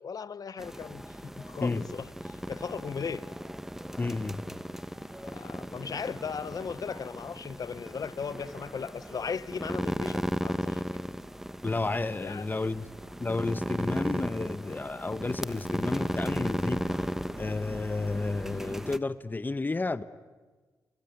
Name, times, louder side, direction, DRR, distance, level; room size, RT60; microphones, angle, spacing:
voice 1, 0.0-3.3 5.2-10.8 12.2-12.7, left 6 dB, 55° left, 1.0 m, -37 dB
sound 1, 0.6-19.0, equal, 5° right, 1.2 m, -36 dB
voice 2, 4.0-4.4 11.6-12.9 13.2-16.8 17.4-20.0, left 3 dB, 25° left, 1.1 m, -31 dB
30.0 x 21.5 x 9.4 m
cardioid pair, 70°, 7 cm